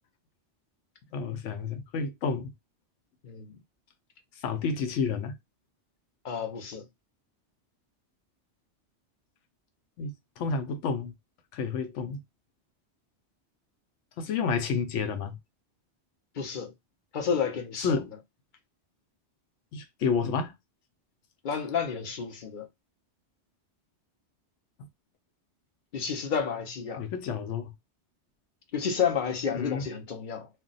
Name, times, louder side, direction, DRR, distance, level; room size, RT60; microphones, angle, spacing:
voice 1, 1.1-2.5 4.4-5.4 10.0-11.1 11.5-12.2 14.2-15.4 17.8-18.1 19.7-20.5 27.0-27.7 29.5-29.8, left 5 dB, 90° left, 1.0 m, -30 dB
voice 2, 3.2-3.6 6.2-6.9 16.4-16.7 17.1-18.0 21.4-22.7 25.9-27.0 28.7-30.5, left 6 dB, 50° left, 0.7 m, -30 dB
2.4 x 2.1 x 3.9 m
omnidirectional pair, 1.2 m